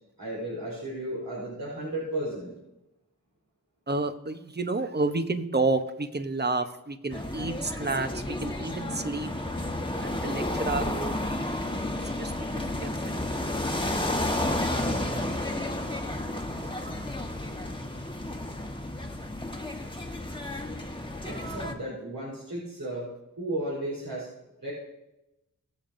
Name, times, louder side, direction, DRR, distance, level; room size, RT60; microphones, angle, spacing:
voice 1, 0.2-2.5 21.3-23.1 23.4-24.3 24.6-24.7, right 1 dB, 80° right, -7 dB, 4.2 m, -34 dB
voice 2, 3.9-8.1 8.4-9.3 9.9-11.8 12.2-12.9 14.9-15.4, right 3 dB, 30° right, 9 dB, 0.9 m, -30 dB
sound 1, 7.1-21.7, left 1 dB, 15° left, 1.3 m, -32 dB
21.0 x 7.3 x 2.7 m, 0.93 s
cardioid pair, 45°, 33 cm